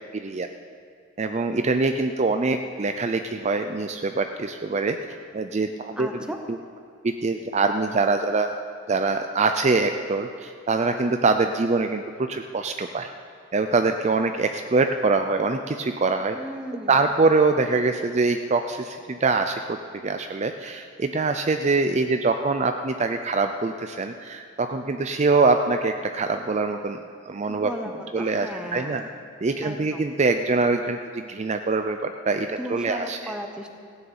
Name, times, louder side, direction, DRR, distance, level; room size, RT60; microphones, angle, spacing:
voice 1, 0.1-0.5 1.2-5.0 5.3-6.2 6.5-6.6 7.0-8.5 8.9-13.1 13.5-16.4 16.9-27.0 27.3-27.7 28.1-29.0 29.4-33.3, right 3 dB, 35° right, 7 dB, 0.5 m, -24 dB
voice 2, 6.0-6.4 16.3-17.0 27.5-29.1 29.6-30.1 32.4-33.7, equal, 5° right, 4 dB, 1.0 m, -36 dB
16.0 x 7.0 x 8.8 m, 2.2 s
head